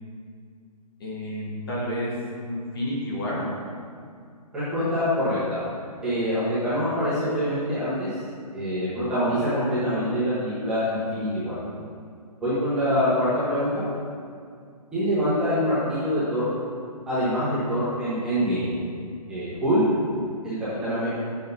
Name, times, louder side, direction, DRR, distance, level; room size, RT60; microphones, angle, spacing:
voice 1, 1.0-2.1 2.4-3.5, equal, 35° left, -5 dB, 1.3 m, -30 dB
voice 2, 4.5-5.6 6.0-8.1 8.5-11.5 12.4-13.8 14.9-16.5 17.1-18.7 19.3-19.8 20.4-21.1, equal, 5° right, -14 dB, 1.1 m, -25 dB
7.3 x 6.9 x 2.7 m, 2.3 s
hypercardioid pair, 175°, 20 cm